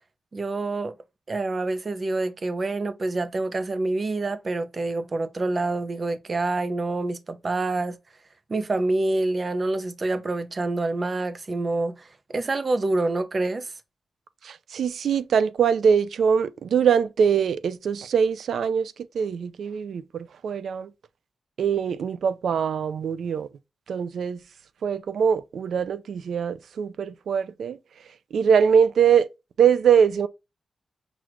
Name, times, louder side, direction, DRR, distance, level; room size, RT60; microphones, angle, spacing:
voice 1, 0.3-0.9 1.3-8.0 8.5-12.1 12.3-13.7, right 2 dB, 30° right, 0.6 m, -27 dB
voice 2, 14.4-20.9 21.6-23.5 23.9-24.4 24.8-27.8 28.3-29.3 29.6-30.3, right 7 dB, 80° right, 0.5 m, -22 dB
6.0 x 2.4 x 2.9 m
wide cardioid pair, 150°, 0 cm